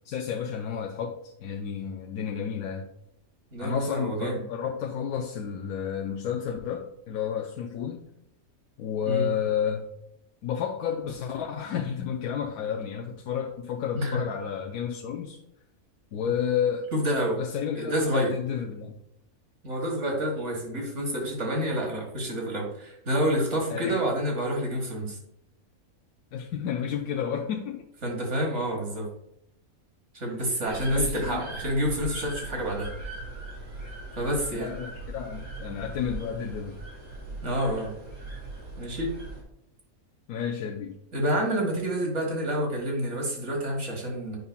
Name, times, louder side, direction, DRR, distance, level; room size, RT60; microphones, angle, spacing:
voice 1, 0.0-2.9 3.6-8.1 8.8-9.9 10.4-15.4 16.1-16.9 17.4-18.9 23.7-24.0 26.3-27.9 30.2-30.4 30.8-31.5 34.5-36.8 40.3-41.0, left 8 dB, 85° left, 2 dB, 1.1 m, -31 dB
voice 2, 3.5-4.4 9.1-9.3 14.0-14.2 16.9-17.4 17.8-18.3 19.6-25.2 28.0-29.1 30.1-32.9 34.2-34.7 37.4-37.9 38.8-39.1 41.1-44.4, equal, 55° right, 1 dB, 1.8 m, -28 dB
sound 1, 30.7-39.4, right 2 dB, 80° right, 2.5 m, -39 dB
9.3 x 5.4 x 2.2 m, 0.78 s
omnidirectional pair, 1.5 m